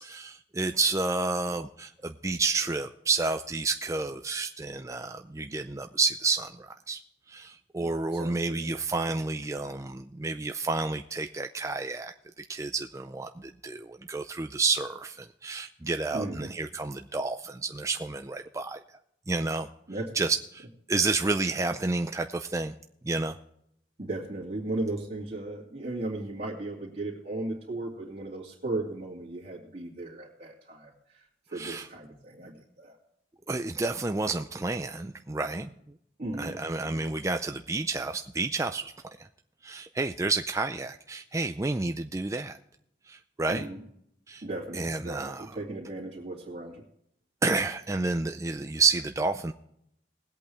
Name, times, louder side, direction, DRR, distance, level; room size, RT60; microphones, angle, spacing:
voice 1, 0.0-7.0 7.3-18.8 19.3-19.7 20.1-22.8 23.0-23.4 31.5-31.9 33.5-35.7 36.4-38.8 39.2-39.3 39.6-42.6 43.1-43.7 44.3-44.4 44.7-45.6 47.4-49.5, right 3 dB, 15° right, 6 dB, 0.4 m, -30 dB
voice 2, 8.2-8.7 16.1-16.5 19.9-20.3 24.0-30.9 31.5-32.9 36.2-37.0 43.5-43.8 44.4-46.8, right 2 dB, 40° right, -6 dB, 2.6 m, -36 dB
20.0 x 8.4 x 3.4 m, 0.75 s
head